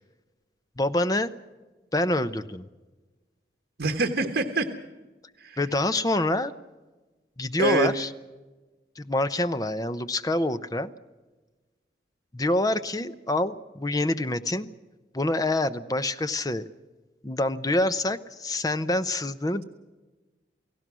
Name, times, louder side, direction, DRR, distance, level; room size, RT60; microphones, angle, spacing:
voice 1, 0.8-1.3 1.9-2.7 5.6-6.5 7.4-8.1 9.0-10.9 12.3-14.7 15.1-16.7 17.2-19.6, left 1 dB, 20° left, 12 dB, 0.7 m, -26 dB
voice 2, 3.8-4.7 5.4-5.6 7.6-7.9, right 3 dB, 75° right, 5 dB, 1.4 m, -25 dB
29.5 x 17.5 x 6.2 m, 1.2 s
head